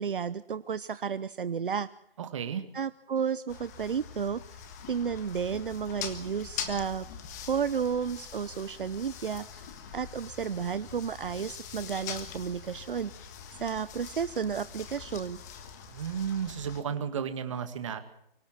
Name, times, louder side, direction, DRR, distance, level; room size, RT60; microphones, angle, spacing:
voice 1, 0.0-1.9 2.7-4.6 4.9-7.1 7.5-9.7 9.9-15.4, right 7 dB, 60° right, 15 dB, 0.8 m, -32 dB
voice 2, 2.2-2.6 15.9-18.0, right 7 dB, 30° right, 9 dB, 2.0 m, -33 dB
sound 1, 3.5-16.8, left 7 dB, 20° left, 1.5 m, -43 dB
24.5 x 17.5 x 7.5 m, 0.74 s
hypercardioid pair, 165°, 29 cm